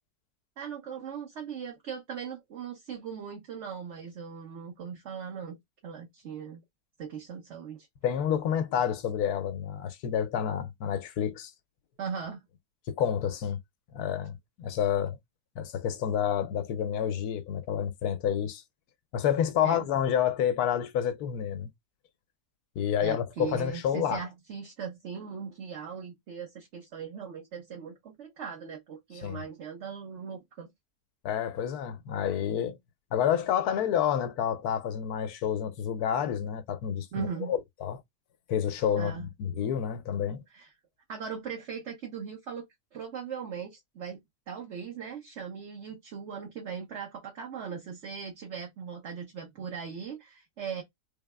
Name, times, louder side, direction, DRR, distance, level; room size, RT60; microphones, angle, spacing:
voice 1, 0.6-5.6 5.8-6.6 7.0-7.9 12.0-12.4 19.6-19.9 23.0-30.7 37.1-37.5 39.0-39.3 40.5-40.7 41.1-42.6 42.9-44.2 44.5-50.8, right 7 dB, 50° right, 1.3 m, -39 dB
voice 2, 8.0-11.5 12.9-13.6 13.9-14.3 14.6-15.2 15.6-18.6 19.1-21.7 22.8-24.2 29.2-29.4 31.2-32.8 33.1-38.0 38.5-40.4, left 9 dB, 80° left, 1.1 m, -29 dB
4.0 x 3.5 x 2.2 m
omnidirectional pair, 1.7 m